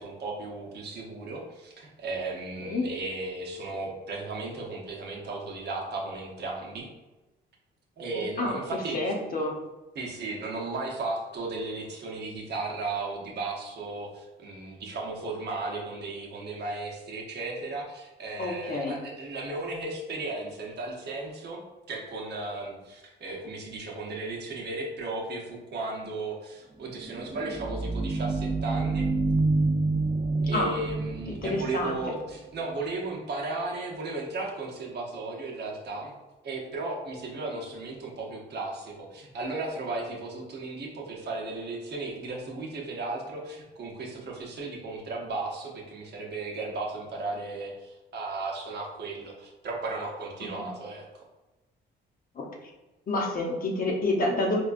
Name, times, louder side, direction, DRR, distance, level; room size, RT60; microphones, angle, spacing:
voice 1, 0.0-6.9 8.0-9.0 9.9-21.6 21.9-29.0 30.4-36.1 36.4-51.1, right 3 dB, 55° right, -1 dB, 0.8 m, -35 dB
voice 2, 8.1-8.6 8.9-9.5 18.4-19.0 30.5-30.7 31.3-32.0 50.6-50.7 52.3-52.5 53.1-54.6, left 2 dB, 45° left, -1 dB, 0.7 m, -28 dB
sound 1, 26.9-32.4, right 3 dB, 20° right, 0.3 m, -28 dB
4.3 x 2.3 x 2.4 m, 1.1 s
cardioid pair, 90°, 20 cm